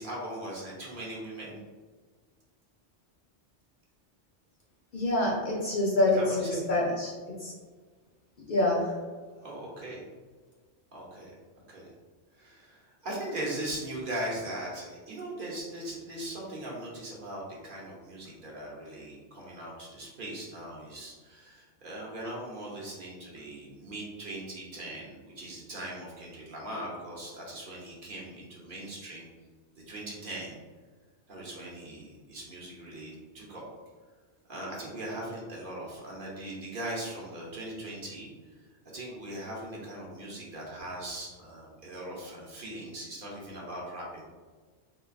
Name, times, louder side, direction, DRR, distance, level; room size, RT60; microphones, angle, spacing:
voice 1, 0.0-1.6 6.2-6.6 9.4-10.0 10.9-11.3 11.7-11.9 12.3-29.3 29.9-30.6 31.3-33.6 34.5-38.3 38.9-44.2, right 1 dB, 55° right, -4 dB, 0.9 m, -39 dB
voice 2, 4.9-7.1 7.4-7.5 8.5-8.9, left 1 dB, 55° left, -4 dB, 0.7 m, -26 dB
3.8 x 2.4 x 2.4 m, 1.5 s
omnidirectional pair, 1.2 m